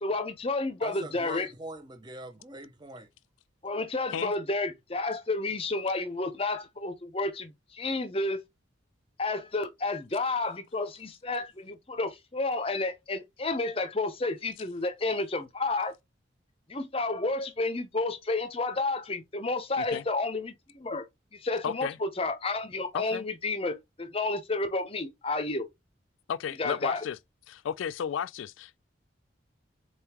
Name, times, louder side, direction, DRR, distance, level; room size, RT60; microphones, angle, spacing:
voice 1, 0.0-1.5 3.6-8.4 9.2-15.9 16.7-21.1 21.3-25.7 26.6-27.0, left 2 dB, 30° left, 0.7 m, -31 dB
voice 2, 0.8-3.1, right 2 dB, 25° right, 0.8 m, -43 dB
voice 3, 21.6-22.0 22.9-23.2 26.3-27.2 27.5-28.8, left 8 dB, 90° left, 0.3 m, -33 dB
4.3 x 3.6 x 2.9 m
head